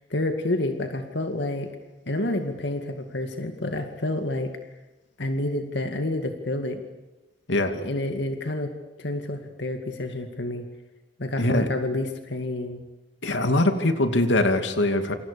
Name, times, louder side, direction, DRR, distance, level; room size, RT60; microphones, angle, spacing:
voice 1, 0.1-1.7 2.1-4.5 5.2-6.8 7.8-8.7 9.0-10.7 11.2-12.8, left 1 dB, 70° left, 5 dB, 2.2 m, -29 dB
voice 2, 7.5-7.8 11.4-11.7 13.2-15.1, left 1 dB, 85° left, 7 dB, 2.6 m, -22 dB
28.5 x 27.0 x 7.0 m, 1.0 s
head